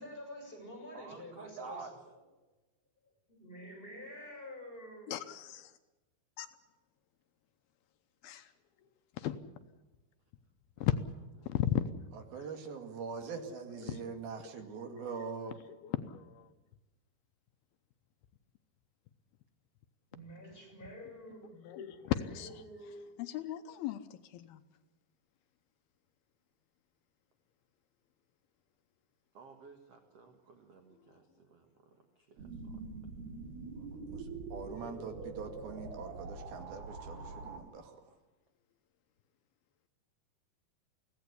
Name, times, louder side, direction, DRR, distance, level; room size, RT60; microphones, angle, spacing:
voice 1, 0.0-1.8 3.3-5.3 20.1-23.1, equal, 10° left, 0 dB, 7.1 m, -48 dB
voice 2, 0.9-1.9 10.8-10.9 29.3-32.8, right 4 dB, 50° right, 5 dB, 2.1 m, -51 dB
voice 3, 5.1-5.7 6.4-6.5 8.2-8.5 9.1-9.4 10.8-11.0 11.4-11.8 13.8-14.1 14.9-15.0 15.8-16.5 21.5-22.6 23.2-24.6, left 12 dB, 75° left, 9 dB, 2.7 m, -35 dB
voice 4, 12.1-15.6 33.8-38.2, right 5 dB, 70° right, 6 dB, 3.9 m, -43 dB
sound 1, 32.4-37.6, right 4 dB, 85° right, 4.4 m, -44 dB
24.0 x 17.0 x 8.3 m, 1.1 s
omnidirectional pair, 4.6 m